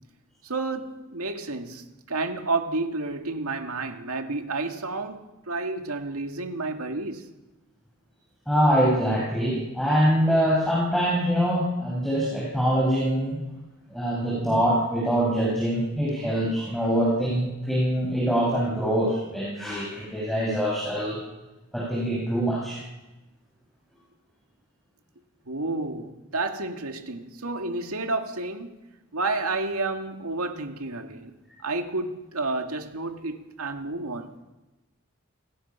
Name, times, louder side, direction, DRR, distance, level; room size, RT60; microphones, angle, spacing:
voice 1, 0.4-7.3 25.5-28.7 29.1-31.3 31.6-34.3, right 3 dB, 90° right, 2.2 m, -30 dB
voice 2, 8.5-13.4 13.9-21.2 21.7-22.8, equal, ahead, 5.4 m, -24 dB
29.0 x 18.5 x 5.7 m
head